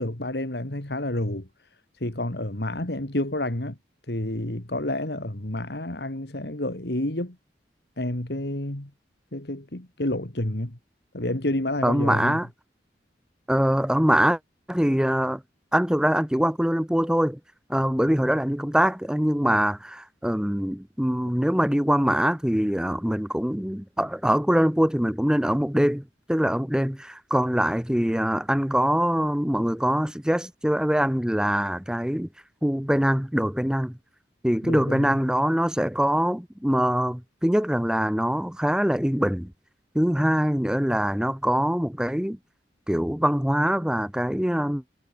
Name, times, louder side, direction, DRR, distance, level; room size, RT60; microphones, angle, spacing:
voice 1, 0.0-1.5 2.0-3.8 4.1-7.4 8.0-8.9 9.3-10.8 11.1-12.4 34.6-35.2, left 1 dB, 70° left, 2.6 m, -29 dB
voice 2, 11.8-12.5 13.5-14.4 14.7-15.4 15.7-17.4 17.7-32.3 32.6-34.0 34.4-39.5 39.9-42.4 42.9-44.8, equal, 5° right, 0.8 m, -23 dB
head